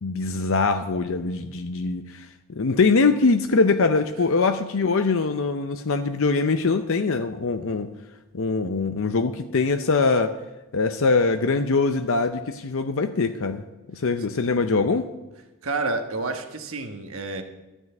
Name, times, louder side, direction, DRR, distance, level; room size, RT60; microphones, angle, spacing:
voice 1, 0.0-7.9 8.3-10.3 10.7-13.6 13.9-15.1, left 4 dB, 65° left, 8 dB, 0.6 m, -23 dB
voice 2, 15.6-17.4, right 3 dB, 65° right, 5 dB, 1.3 m, -29 dB
13.0 x 6.3 x 8.9 m, 1.1 s
head